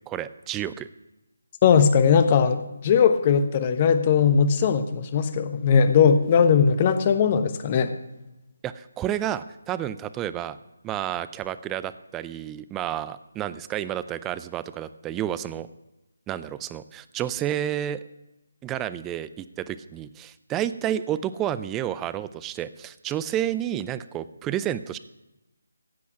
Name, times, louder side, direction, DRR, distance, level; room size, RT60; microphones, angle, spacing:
voice 1, 0.1-0.9 8.6-10.6 10.8-15.7 16.3-18.0 18.6-25.0, right 11 dB, 10° right, 14 dB, 0.4 m, -30 dB
voice 2, 1.6-7.9, left 6 dB, 30° left, 10 dB, 1.0 m, -19 dB
15.5 x 8.4 x 6.0 m, 0.98 s
figure-of-eight pair, 155°, 0 cm